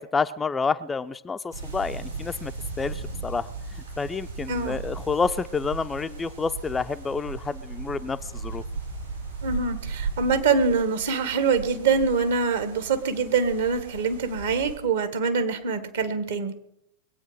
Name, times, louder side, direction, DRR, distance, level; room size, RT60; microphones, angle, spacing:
voice 1, 0.0-2.5 2.8-3.5 4.0-8.6, left 5 dB, 15° left, 10 dB, 0.5 m, -29 dB
sound 1, 1.5-14.8, right 4 dB, 85° right, 5.9 m, -36 dB
voice 2, 4.5-4.8 9.4-16.5, right 5 dB, 60° right, 9 dB, 1.7 m, -24 dB
21.5 x 8.7 x 6.1 m, 0.77 s
figure-of-eight pair, 90°, 0 cm